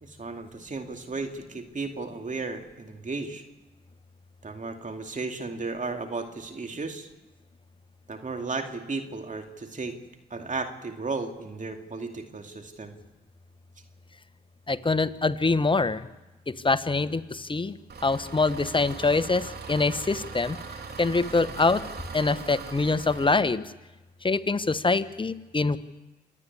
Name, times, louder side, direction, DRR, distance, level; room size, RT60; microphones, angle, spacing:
voice 1, 0.0-3.4 4.4-7.1 8.1-10.0 10.3-12.9, right 3 dB, 40° right, 4 dB, 2.4 m, -34 dB
voice 2, 14.7-16.1 16.5-17.8 18.0-20.6 21.0-21.8 22.1-23.6 24.2-25.8, left 3 dB, 25° left, 13 dB, 1.1 m, -24 dB
Engine, 17.9-23.3, right 4 dB, 55° right, 3.1 m, -40 dB
27.0 x 9.9 x 9.8 m, 1.1 s
hypercardioid pair, 45°, 20 cm